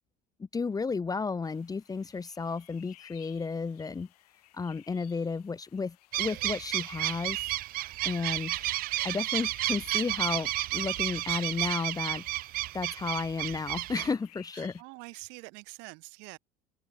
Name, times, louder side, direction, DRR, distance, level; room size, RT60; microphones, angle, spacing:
voice 1, 0.4-4.1 4.5-7.4 8.0-8.6 9.0-12.2 12.7-14.7, left 4 dB, 20° left, 0.8 m, -33 dB
sound 1, 1.4-14.8, left 17 dB, 80° left, 2.2 m, -58 dB
sound 2, 6.1-14.1, right 17 dB, 50° right, 0.5 m, -32 dB
voice 2, 14.5-16.4, right 32 dB, 70° right, 2.0 m, -46 dB
open air
hypercardioid pair, 80°, 19 cm